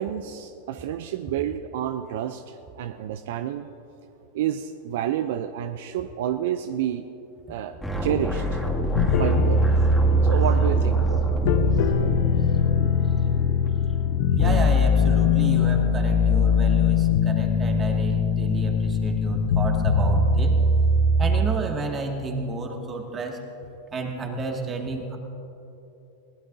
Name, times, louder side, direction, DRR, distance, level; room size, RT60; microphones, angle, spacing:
voice 1, 0.0-3.7 4.3-7.1 7.5-7.7 8.0-8.6 9.1-9.6 10.2-11.2, right 10 dB, 65° right, 10 dB, 0.5 m, -29 dB
sound 1, 7.8-14.6, equal, 5° left, 2.3 m, -29 dB
sound 2, 8.8-12.3, left 1 dB, 20° left, 3.5 m, -41 dB
sound 3, 8.9-21.4, left 3 dB, 55° left, 0.9 m, -21 dB
voice 2, 14.4-20.6 21.2-23.4 23.9-25.2, right 3 dB, 25° right, 2 dB, 2.1 m, -31 dB
22.0 x 16.0 x 2.7 m, 3.0 s
hypercardioid pair, 105°, 0 cm